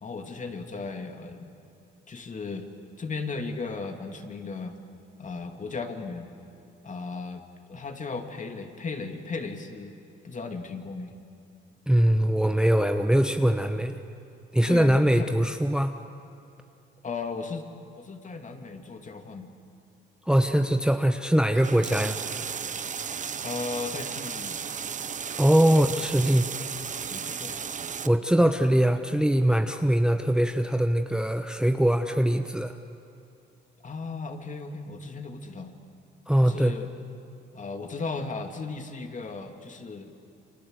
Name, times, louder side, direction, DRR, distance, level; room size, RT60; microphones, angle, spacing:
voice 1, 0.0-1.5 2.1-2.7 3.0-4.7 5.2-6.3 6.8-7.4 7.7-9.9 10.2-11.2 14.7-15.3 17.0-17.6 18.0-19.5 23.4-24.6 25.6-25.7 26.2-26.4 27.1-27.6 33.8-35.7 36.4-36.9 37.5-40.1, left 4 dB, 40° left, 5 dB, 2.8 m, -36 dB
voice 2, 11.9-14.0 14.5-16.0 20.3-22.2 25.4-26.5 28.0-32.8 36.3-36.7, right 1 dB, 5° right, 7 dB, 1.1 m, -22 dB
sound 1, 21.5-28.1, right 7 dB, 40° right, 0.9 m, -34 dB
29.0 x 25.0 x 8.1 m, 2.7 s
cardioid pair, 90°, 20 cm